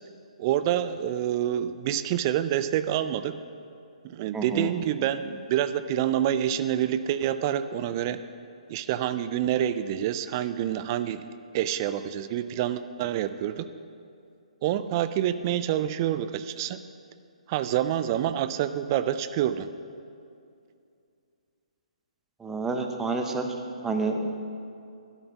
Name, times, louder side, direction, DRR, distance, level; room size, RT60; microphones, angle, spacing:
voice 1, 0.4-3.4 4.0-8.2 8.7-11.3 11.5-13.6 14.6-16.8 17.5-19.7, right 11 dB, 30° right, 12 dB, 0.3 m, -27 dB
voice 2, 4.3-4.7 22.4-23.5 23.8-24.3, right 3 dB, 10° right, 5 dB, 0.8 m, -28 dB
12.0 x 7.8 x 5.9 m, 2.5 s
figure-of-eight pair, 135°, 4 cm